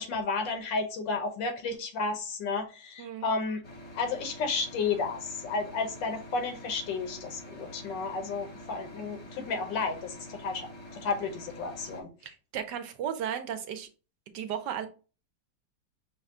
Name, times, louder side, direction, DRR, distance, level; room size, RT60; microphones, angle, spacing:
voice 1, 0.0-3.6 4.0-10.7 10.9-12.1, left 4 dB, 85° left, 6 dB, 1.6 m, -32 dB
sound 1, 3.6-12.0, left 1 dB, 30° left, 0.8 m, -46 dB
voice 2, 12.2-13.9 14.3-14.9, right 9 dB, 75° right, 8 dB, 1.3 m, -35 dB
5.5 x 2.2 x 3.6 m, 0.34 s
omnidirectional pair, 1.9 m